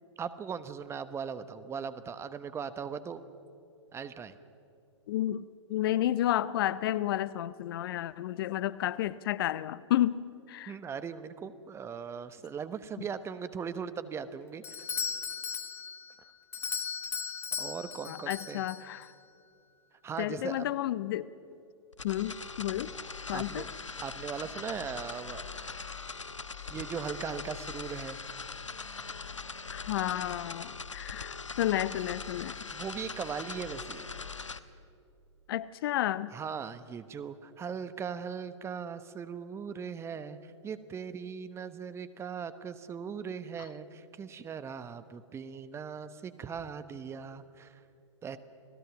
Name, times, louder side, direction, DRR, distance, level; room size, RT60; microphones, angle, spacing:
voice 1, 0.2-3.2 3.9-4.3 10.7-14.8 17.6-18.7 20.0-20.7 23.3-23.7 24.0-25.8 26.7-28.2 32.7-34.1 36.3-47.8 48.2-48.4, right 6 dB, 15° right, 12 dB, 1.0 m, -39 dB
voice 2, 5.1-5.4 5.7-10.2 10.5-10.7 18.1-19.1 20.2-21.3 22.0-22.9 23.3-23.6 29.7-32.5 35.5-36.3, left 13 dB, 50° left, 18 dB, 0.6 m, -31 dB
Doorbell, 14.6-19.1, left 6 dB, 15° left, 1.1 m, -37 dB
sound 1, 21.9-34.6, left 5 dB, 85° left, 1.0 m, -41 dB
30.0 x 19.5 x 6.1 m, 2.5 s
figure-of-eight pair, 110°, 15 cm